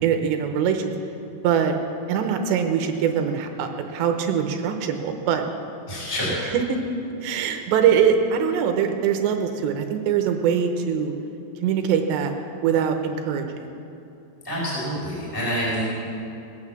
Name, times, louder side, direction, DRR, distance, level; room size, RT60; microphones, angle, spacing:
voice 1, 0.0-0.9 1.4-1.8 2.1-5.4 6.7-6.8 7.2-11.1 11.6-12.3 12.6-13.8, right 7 dB, 75° right, 5 dB, 2.9 m, -23 dB
voice 2, 5.9-6.5 14.4-15.8, equal, 5° left, -7 dB, 4.1 m, -27 dB
19.5 x 9.0 x 7.2 m, 2.8 s
omnidirectional pair, 5.6 m